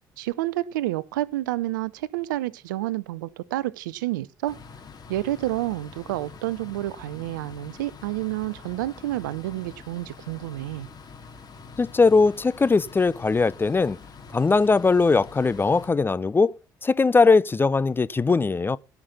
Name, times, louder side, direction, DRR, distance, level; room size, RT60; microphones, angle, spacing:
voice 1, 0.2-4.6 5.1-10.9, right 15 dB, 80° right, 0.5 m, -29 dB
sound 1, 4.5-15.9, left 5 dB, 40° left, 3.3 m, -45 dB
voice 2, 11.8-14.0 14.3-16.5 16.8-18.8, left 4 dB, 20° left, 0.5 m, -20 dB
17.0 x 6.0 x 5.5 m
hypercardioid pair, 55°, 10 cm